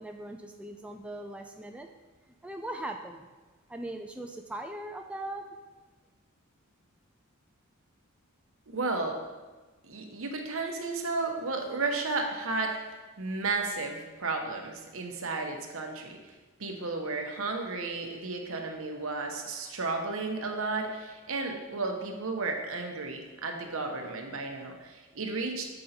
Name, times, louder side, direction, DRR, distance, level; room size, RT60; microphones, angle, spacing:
voice 1, 0.0-1.9 2.4-3.3 3.7-5.5, right 1 dB, 5° right, 3 dB, 0.3 m, -39 dB
voice 2, 8.7-9.2 9.8-12.8 13.2-16.2 16.6-25.7, right 3 dB, 70° right, 3 dB, 1.0 m, -33 dB
7.8 x 5.4 x 4.3 m, 1.2 s
head